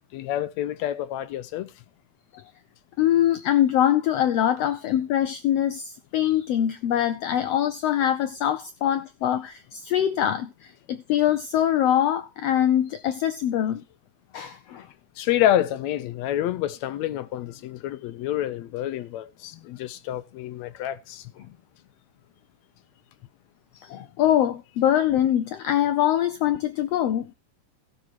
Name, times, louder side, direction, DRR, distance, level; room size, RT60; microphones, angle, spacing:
voice 1, 0.1-1.7 15.2-21.3, left 12 dB, 75° left, 1.7 m, -28 dB
voice 2, 3.0-13.8 14.3-14.8 23.8-27.3, left 11 dB, 90° left, 1.4 m, -23 dB
15.0 x 6.5 x 4.4 m
omnidirectional pair, 3.6 m